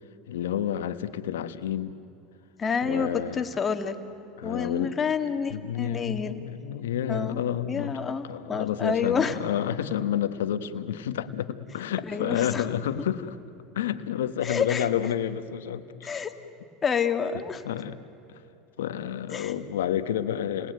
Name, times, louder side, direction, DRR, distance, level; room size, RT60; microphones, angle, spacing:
voice 1, 0.3-1.9 2.8-3.4 4.4-5.0 5.5-13.4 13.7-15.9 17.6-17.9 18.3-18.4 18.8-20.7, left 10 dB, 90° left, 10 dB, 1.2 m, -30 dB
voice 2, 2.6-4.0 4.4-6.4 7.1-7.4 7.7-9.4 12.1-12.6 14.4-14.9 16.0-16.3 16.8-17.6 19.3-19.5, left 6 dB, 30° left, 7 dB, 2.0 m, -28 dB
30.0 x 20.0 x 9.4 m, 3.0 s
supercardioid pair, 100°, 0 cm